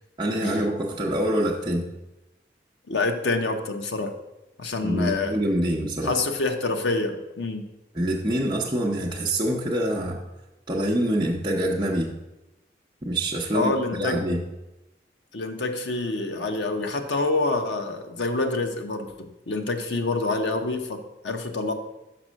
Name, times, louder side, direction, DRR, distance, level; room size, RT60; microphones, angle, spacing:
voice 1, 0.2-1.9 4.8-6.2 7.9-10.2 10.7-12.1 13.0-14.4, right 1 dB, 25° right, -4 dB, 0.7 m, -25 dB
voice 2, 2.9-4.1 4.6-5.4 6.0-7.7 13.5-14.2 15.3-21.7, left 3 dB, 80° left, 6 dB, 0.8 m, -27 dB
6.0 x 5.3 x 6.2 m, 0.98 s
head